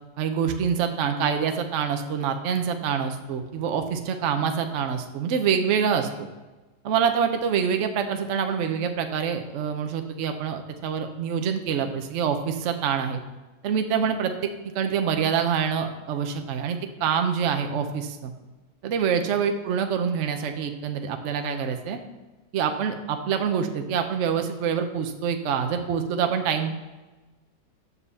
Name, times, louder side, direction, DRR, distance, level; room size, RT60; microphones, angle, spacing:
voice 1, 0.2-6.1 6.8-13.2 13.6-18.3 18.8-22.0 22.5-26.7, right 7 dB, 55° right, 6 dB, 0.9 m, -26 dB
7.1 x 5.5 x 7.0 m, 1.2 s
omnidirectional pair, 2.0 m